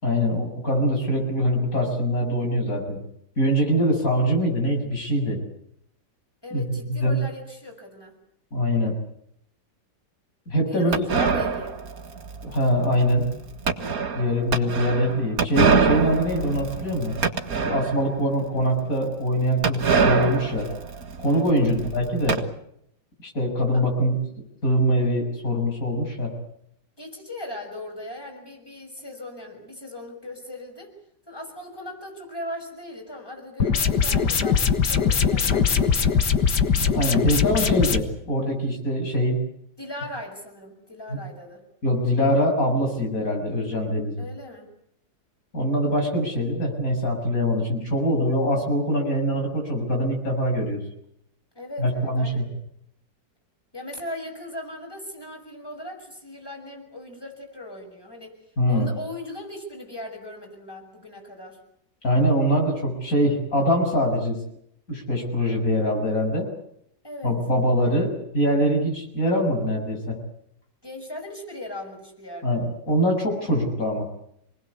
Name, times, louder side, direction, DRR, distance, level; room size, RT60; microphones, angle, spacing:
voice 1, 0.0-3.0 3.4-5.4 6.5-6.6 7.0-7.2 8.5-8.9 10.5-11.0 12.4-13.3 14.1-17.1 17.6-20.7 21.2-22.4 23.2-24.2 24.6-26.3 36.8-39.4 41.1-41.2 41.8-44.2 45.5-50.8 51.8-52.5 58.6-58.9 62.0-64.4 64.9-66.5 67.2-70.2 72.4-74.1, equal, 50° left, 2 dB, 7.4 m, -23 dB
voice 2, 6.4-8.2 10.7-11.8 21.5-22.0 23.7-23.8 27.0-30.9 31.3-36.3 39.8-41.6 44.2-44.7 51.5-52.5 53.7-61.6 67.0-67.4 70.8-72.6, left 1 dB, 10° left, 3 dB, 6.1 m, -38 dB
sound 1, 10.9-18.2 18.6-18.7 18.9-19.0 19.6-22.4, right 5 dB, 55° right, 2.1 m, -24 dB
sound 2, 33.6-38.0, left 6 dB, 70° left, 2.1 m, -21 dB
28.0 x 20.5 x 8.3 m, 0.74 s
omnidirectional pair, 1.9 m